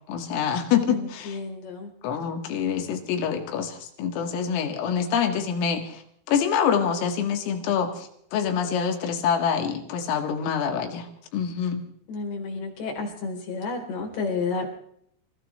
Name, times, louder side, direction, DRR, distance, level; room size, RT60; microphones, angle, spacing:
voice 1, 0.1-1.4 2.0-6.0 6.3-11.1 11.3-11.8, left 7 dB, 80° left, 4 dB, 4.5 m, -26 dB
voice 2, 0.9-1.9 12.1-14.7, left 4 dB, 55° left, 1 dB, 5.7 m, -31 dB
28.5 x 16.0 x 3.2 m, 0.69 s
omnidirectional pair, 5.9 m